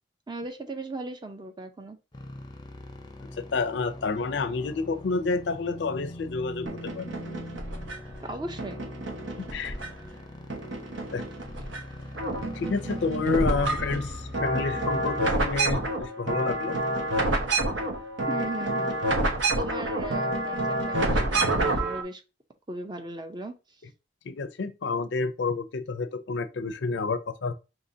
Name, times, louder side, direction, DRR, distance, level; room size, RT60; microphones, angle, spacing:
voice 1, 0.3-2.0 8.2-8.8 13.5-13.7 18.3-19.0 19.6-22.2 22.7-23.5, right 2 dB, 25° right, 0.5 m, -37 dB
sound 1, 2.1-15.9, left 1 dB, 20° left, 0.6 m, -42 dB
voice 2, 3.5-7.1 9.4-9.8 11.1-11.2 12.4-16.8 24.3-27.5, left 4 dB, 65° left, 0.5 m, -29 dB
sound 2, 6.7-8.1 8.6-10.2 10.5-11.8 12.1-22.0, right 2 dB, 80° right, 1.0 m, -28 dB
5.4 x 2.9 x 2.7 m
head